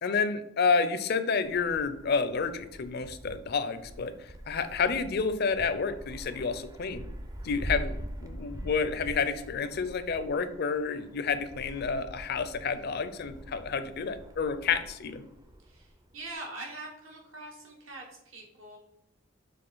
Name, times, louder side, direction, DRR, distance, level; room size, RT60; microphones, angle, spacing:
voice 1, 0.0-7.1 7.4-15.2, left 5 dB, 50° left, 12 dB, 0.5 m, -30 dB
Wind, 1.4-16.3, equal, 15° right, 0.5 m, -44 dB
voice 2, 15.6-18.8, right 2 dB, 80° right, 0 dB, 1.8 m, -43 dB
6.7 x 3.6 x 3.9 m, 0.79 s
head